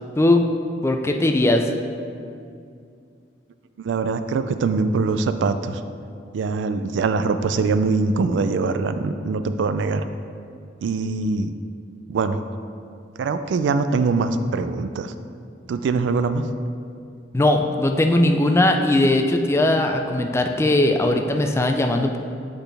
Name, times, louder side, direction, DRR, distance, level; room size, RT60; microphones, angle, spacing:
voice 1, 0.8-1.7 17.3-22.2, left 1 dB, 15° left, 4 dB, 0.3 m, -19 dB
voice 2, 3.8-5.8 6.3-10.0 10.8-11.5 12.1-12.4 13.2-15.1 15.7-16.4, right 4 dB, 85° right, 10 dB, 0.3 m, -23 dB
7.9 x 4.0 x 3.4 m, 2.4 s
head